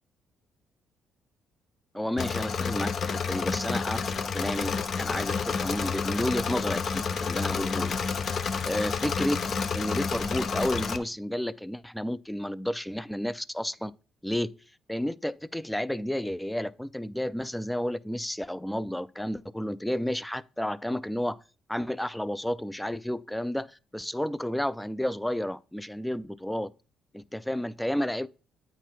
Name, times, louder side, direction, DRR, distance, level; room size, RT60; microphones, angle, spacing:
voice 1, 1.9-7.9 8.6-9.4 9.7-13.9 14.2-14.5 14.9-21.4 21.7-26.7 27.1-28.3, left 1 dB, 5° left, 0.4 m, -31 dB
Engine / Mechanisms, 2.2-11.0, left 5 dB, 55° left, 0.7 m, -30 dB
9.0 x 3.9 x 4.5 m
supercardioid pair, 65°, 0 cm